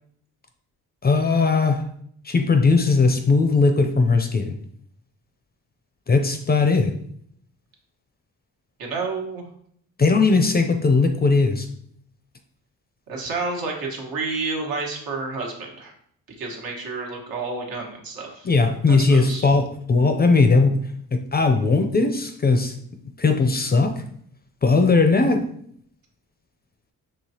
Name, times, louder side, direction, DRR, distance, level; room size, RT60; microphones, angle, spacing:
voice 1, 1.0-1.8 2.2-4.5 6.1-6.9 10.0-11.7 18.4-20.8 21.1-22.7 23.2-23.9 24.6-25.5, left 3 dB, 25° left, 6 dB, 0.5 m, -18 dB
voice 2, 8.8-9.5 13.1-15.9 16.4-18.5 18.9-19.4, right 3 dB, 70° right, 0 dB, 1.3 m, -30 dB
4.8 x 3.2 x 2.8 m, 0.66 s
cardioid pair, 80°, 36 cm